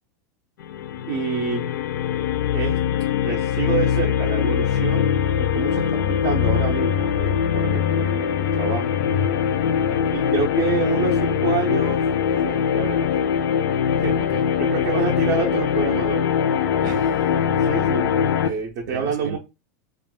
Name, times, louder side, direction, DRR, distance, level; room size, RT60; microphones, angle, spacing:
sound 1, 0.6-18.5, left 8 dB, 85° left, 0.4 m, -22 dB
voice 1, 1.1-1.8 2.5-2.8 3.2-5.1 5.4-9.0 10.1-12.0 12.4-13.1 13.9-14.2 14.6-16.3 17.6-19.4, right 6 dB, 30° right, 0.4 m, -28 dB
voice 2, 9.6-10.0 14.2-14.5 16.8-17.3 18.5-18.6 18.9-19.4, right 6 dB, 85° right, 0.5 m, -36 dB
2.4 x 2.1 x 3.6 m
supercardioid pair, 180°, 9 cm